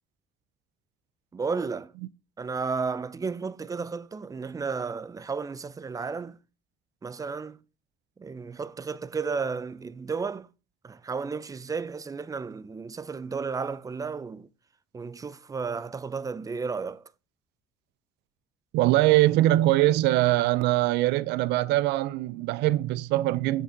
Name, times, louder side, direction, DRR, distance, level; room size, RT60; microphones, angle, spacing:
voice 1, 1.3-1.9 2.4-6.4 7.0-7.6 8.2-10.5 10.8-14.5 14.9-17.0, right 5 dB, 20° right, 0.5 m, -33 dB
voice 2, 18.7-23.6, right 16 dB, 85° right, 0.4 m, -22 dB
7.2 x 7.1 x 3.5 m
cardioid pair, 110°, 17 cm